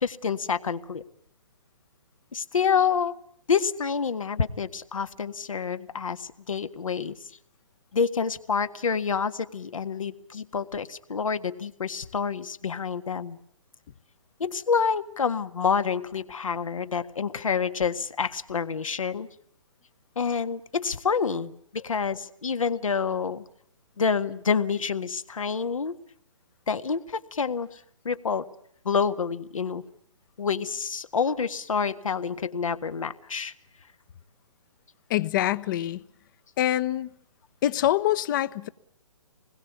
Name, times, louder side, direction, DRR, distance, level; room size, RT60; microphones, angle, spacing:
voice 1, 0.0-1.0 2.3-3.1 3.5-7.1 7.9-13.4 14.4-19.3 20.1-23.4 24.0-26.0 26.7-27.8 28.0-28.5 28.8-29.8 30.4-33.5, left 6 dB, 75° left, 1.7 m, -28 dB
voice 2, 35.1-36.0 36.6-37.1 37.6-38.7, left 13 dB, 35° left, 1.0 m, -25 dB
26.5 x 21.0 x 8.3 m
figure-of-eight pair, 135°, 17 cm